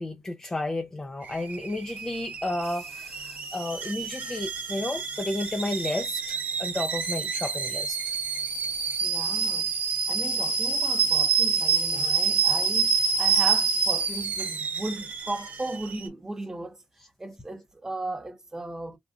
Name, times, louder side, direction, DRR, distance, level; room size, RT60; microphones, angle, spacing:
voice 1, 0.0-8.0, left 2 dB, 20° left, 0.6 m, -32 dB
Alarm / Boiling, 1.2-16.1, right 5 dB, 50° right, 1.0 m, -27 dB
voice 2, 9.0-9.7 10.1-16.8 17.2-19.0, right 2 dB, 15° right, 1.0 m, -36 dB
3.6 x 2.5 x 2.4 m
cardioid pair, 115°, 4 cm